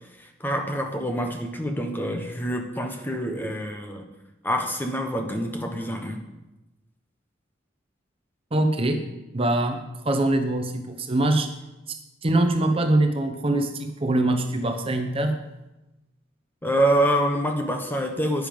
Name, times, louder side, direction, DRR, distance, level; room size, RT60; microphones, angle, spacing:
voice 1, 0.4-4.1 4.4-6.2 16.6-18.5, right 1 dB, 10° left, 4 dB, 1.1 m, -26 dB
voice 2, 8.5-9.0 9.3-11.5 12.2-15.3, right 1 dB, 30° right, 5 dB, 0.8 m, -23 dB
10.0 x 9.4 x 5.3 m, 1.0 s
head